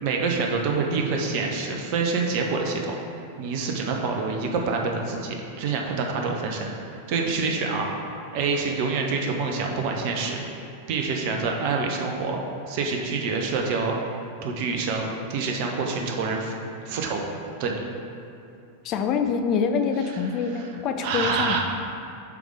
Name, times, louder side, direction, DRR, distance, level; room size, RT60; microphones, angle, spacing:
voice 1, 0.0-3.0 3.4-7.9 8.3-10.4 10.9-12.4 12.7-14.0 14.4-16.6 16.8-17.2 17.6-17.8 20.1-20.7 21.0-21.6, right 4 dB, 45° right, 1 dB, 0.7 m, -27 dB
voice 2, 18.8-21.6, left 6 dB, 35° left, 6 dB, 0.5 m, -25 dB
6.9 x 3.6 x 4.9 m, 2.6 s
figure-of-eight pair, 90°, 0 cm